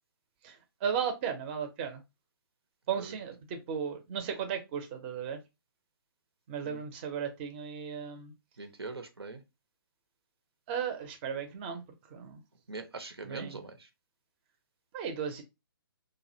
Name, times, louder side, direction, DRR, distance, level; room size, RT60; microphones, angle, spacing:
voice 1, 0.8-2.0 2.9-5.4 6.5-8.3 10.7-11.8 12.1-12.4 13.3-13.6 14.9-15.4, right 7 dB, 25° right, 0.5 m, -35 dB
voice 2, 8.6-9.4 12.7-13.9, right 3 dB, 90° right, 0.6 m, -42 dB
2.3 x 2.0 x 2.6 m
figure-of-eight pair, 135°, 13 cm